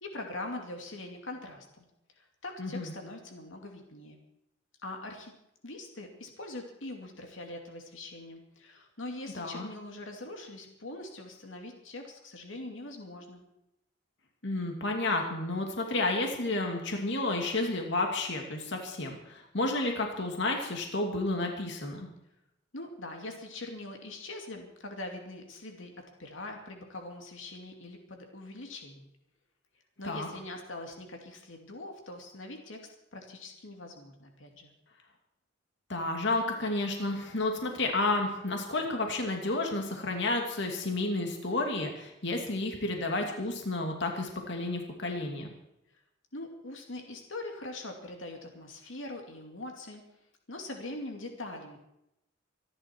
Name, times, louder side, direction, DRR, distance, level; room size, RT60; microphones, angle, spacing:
voice 1, 0.0-1.8 2.2-4.2 4.8-5.3 5.6-13.4 22.7-25.9 26.2-29.1 30.0-32.8 33.1-34.7 46.3-50.0 50.5-51.8, left 2 dB, 85° left, 3 dB, 2.6 m, -42 dB
voice 2, 2.6-2.9 9.3-9.7 14.4-22.1 30.0-30.3 35.9-45.5, left 2 dB, 65° left, 2 dB, 2.6 m, -31 dB
25.5 x 11.0 x 4.6 m, 0.83 s
head